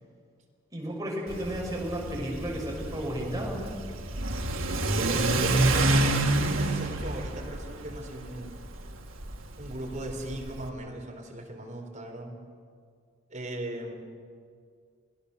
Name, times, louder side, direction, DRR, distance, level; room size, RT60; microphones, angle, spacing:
voice 1, 0.7-3.8, equal, 20° right, -2 dB, 5.9 m, -33 dB
Car / Accelerating revving vroom, 1.3-10.7, right 2 dB, 90° right, 1.9 m, -28 dB
voice 2, 5.0-8.6 9.6-12.4 13.3-13.9, right 1 dB, 40° right, 1 dB, 3.9 m, -38 dB
26.0 x 16.0 x 6.8 m, 2.1 s
head